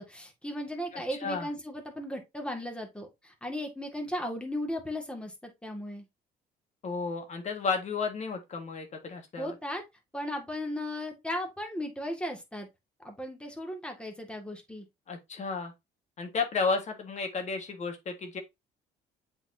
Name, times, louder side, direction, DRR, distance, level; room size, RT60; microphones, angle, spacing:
voice 1, 0.0-6.0 9.4-9.8 10.1-12.7 13.0-14.9, equal, 5° left, 2.1 m, -36 dB
voice 2, 0.9-1.5 6.8-9.5 15.1-15.7 16.2-18.4, left 4 dB, 45° left, 1.7 m, -32 dB
7.9 x 4.3 x 2.8 m
cardioid pair, 110°, 17 cm